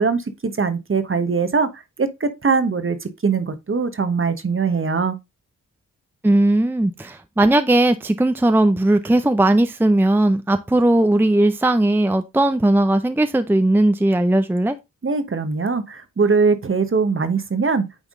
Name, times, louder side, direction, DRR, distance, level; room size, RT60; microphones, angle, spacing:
voice 1, 0.0-5.2 15.0-17.9, right 4 dB, 40° right, 1.1 m, -21 dB
voice 2, 6.2-14.8, right 1 dB, 5° right, 0.6 m, -18 dB
9.2 x 3.5 x 3.6 m
cardioid pair, 55°, 33 cm